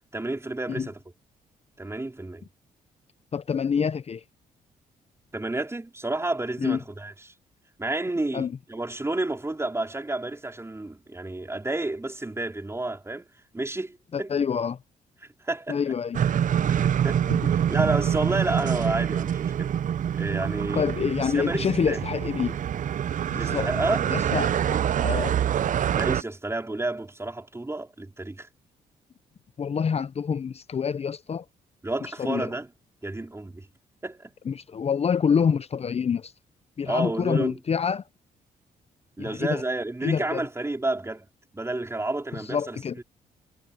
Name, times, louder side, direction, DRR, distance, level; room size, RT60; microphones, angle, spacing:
voice 1, 0.1-1.0 1.8-2.4 5.3-7.3 7.8-13.3 13.5-14.3 15.4-15.9 16.7-19.7 20.1-20.9 21.2-22.0 23.3-24.0 25.9-28.5 31.8-32.7 33.0-33.7 34.0-34.3 36.9-37.6 39.2-41.3 41.5-43.0, right 2 dB, 15° right, 4.2 m, -30 dB
voice 2, 3.3-4.2 6.6-6.8 8.3-8.5 14.1-14.8 15.7-16.2 17.3-17.5 20.7-22.5 23.3-23.7 24.1-25.4 29.6-31.4 32.2-32.5 34.5-36.3 36.8-38.0 39.2-39.6 40.0-40.4 42.4-42.9, left 6 dB, 40° left, 0.6 m, -27 dB
sound 1, 16.1-26.2, right 9 dB, 55° right, 0.6 m, -25 dB
cardioid pair, 70°, 16 cm